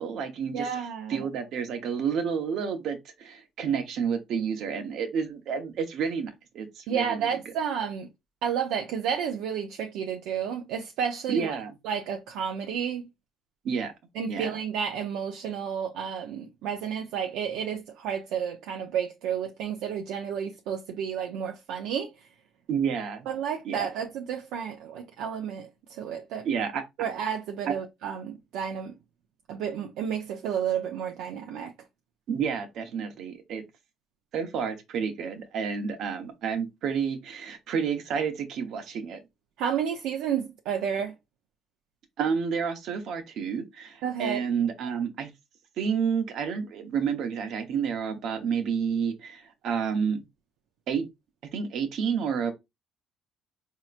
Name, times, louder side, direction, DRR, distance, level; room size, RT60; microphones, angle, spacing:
voice 1, 0.0-0.7 1.1-7.3 11.3-11.7 13.6-13.9 14.3-14.5 22.7-23.3 23.6-23.9 26.4-26.8 27.7-27.8 32.3-33.6 34.3-39.2 42.2-45.3 45.8-50.2 50.9-51.1 51.5-52.5, right 6 dB, 65° right, 0.9 m, -30 dB
voice 2, 0.5-1.2 6.9-8.1 8.4-11.6 11.8-13.0 14.1-22.1 23.3-26.5 27.0-28.9 29.5-31.7 39.6-41.1 44.0-44.4, right 8 dB, 85° right, 0.5 m, -31 dB
4.3 x 2.8 x 2.4 m
cardioid pair, 110°, 0 cm